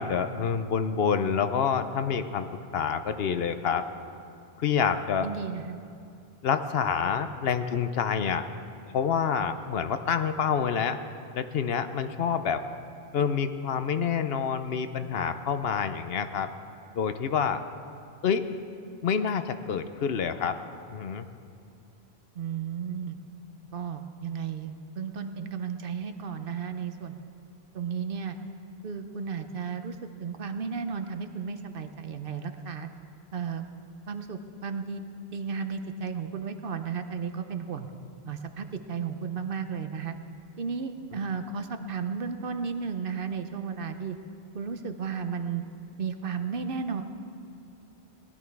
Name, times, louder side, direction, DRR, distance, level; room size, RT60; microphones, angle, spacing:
voice 1, 0.0-3.8 4.6-5.3 6.4-8.4 8.9-11.0 11.3-12.6 13.1-16.5 17.0-17.6 18.2-18.5 19.0-20.6 20.9-21.3, left 7 dB, 70° left, 10 dB, 0.9 m, -27 dB
voice 2, 5.2-5.8 22.4-23.2 23.7-27.2 27.7-28.4 28.8-29.9 30.2-32.9 33.3-33.6 34.1-35.0 35.3-37.9 38.3-40.1 40.6-44.1 44.5-45.6 46.0-47.0, right 6 dB, 60° right, 8 dB, 0.9 m, -34 dB
18.5 x 12.0 x 4.6 m, 2.5 s
omnidirectional pair, 1.1 m